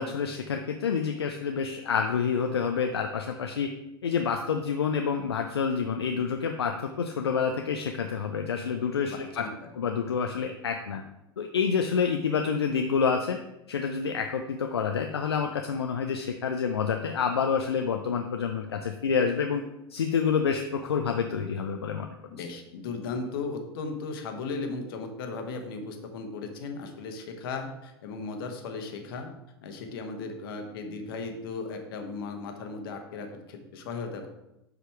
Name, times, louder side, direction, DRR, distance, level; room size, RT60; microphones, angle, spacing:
voice 1, 0.0-3.7 4.0-9.5 9.8-11.0 11.4-13.4 13.7-19.6 19.9-22.1, left 6 dB, 80° left, 4 dB, 0.5 m, -28 dB
voice 2, 9.0-9.5 22.3-29.3 29.6-34.3, left 4 dB, 65° left, 5 dB, 1.2 m, -36 dB
6.9 x 5.1 x 4.6 m, 0.90 s
figure-of-eight pair, 80°, 13 cm